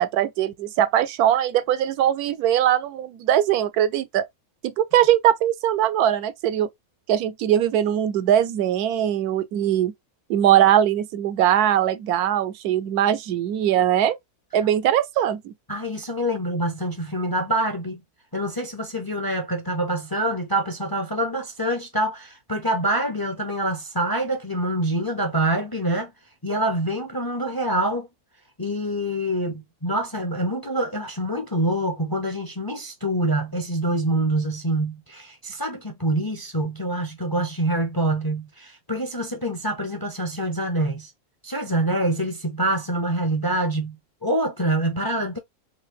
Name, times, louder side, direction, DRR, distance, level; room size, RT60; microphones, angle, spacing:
voice 1, 0.0-4.3 4.6-6.7 7.1-9.9 10.3-14.2 14.5-15.5, right 11 dB, 85° right, 1.1 m, -21 dB
voice 2, 15.7-18.0 18.3-26.1 26.4-28.1 28.6-41.1 41.4-44.0 44.2-45.4, right 1 dB, 30° left, 0.4 m, -25 dB
3.9 x 2.8 x 3.0 m
omnidirectional pair, 1.6 m